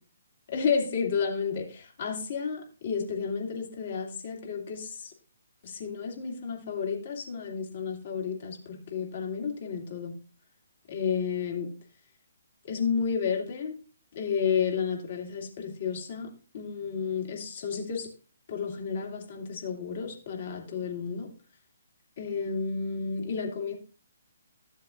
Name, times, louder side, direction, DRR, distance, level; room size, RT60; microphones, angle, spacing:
voice 1, 0.5-5.1 5.6-10.1 10.9-11.7 12.6-13.7 14.1-16.3 16.5-18.1 18.5-21.3 22.2-23.7, left 6 dB, 50° left, 1 dB, 2.6 m, -31 dB
14.0 x 7.3 x 2.6 m, 0.37 s
figure-of-eight pair, 140°, 0 cm